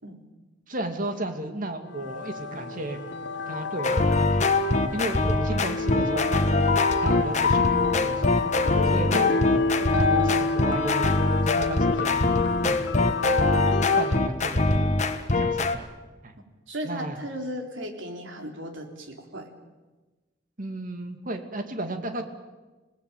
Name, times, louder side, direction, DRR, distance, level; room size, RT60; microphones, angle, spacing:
voice 1, 0.7-3.0 3.5-4.6 4.9-6.6 7.0-8.5 8.8-9.6 10.0-12.2 12.6-13.2 14.0-15.0 15.4-15.9 16.2-16.3 16.8-17.2 20.6-22.2, right 1 dB, 45° right, 6 dB, 2.6 m, -34 dB
sound 1, 1.9-14.3, left 4 dB, 65° left, 1.3 m, -29 dB
sound 2, 3.8-15.8, left 2 dB, 40° left, 1.6 m, -23 dB
voice 2, 16.7-19.5, equal, 90° right, 3 dB, 4.1 m, -36 dB
27.0 x 19.0 x 9.2 m, 1.2 s
head